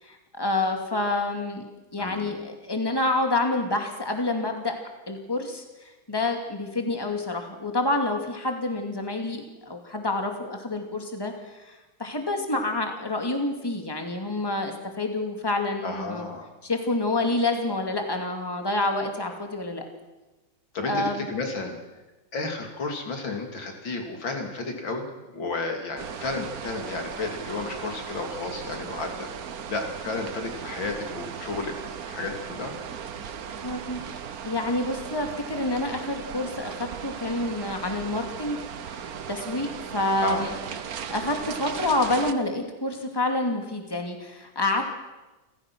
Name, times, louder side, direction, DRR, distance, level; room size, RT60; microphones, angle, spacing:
voice 1, 0.0-1.7 1.9-4.7 5.1-16.3 16.6-19.8 20.8-21.3 33.6-34.0 34.4-38.6 38.9-40.6 40.9-44.9, left 2 dB, 10° left, 4 dB, 2.4 m, -28 dB
voice 2, 2.0-2.3 15.8-16.5 20.7-21.8 22.3-25.0 25.3-29.3 29.7-32.7 40.2-40.5, left 3 dB, 65° left, 3 dB, 3.7 m, -32 dB
sound 1, 26.0-42.3, right 7 dB, 55° right, 1.3 m, -37 dB
28.5 x 16.0 x 6.2 m, 1.1 s
omnidirectional pair, 2.3 m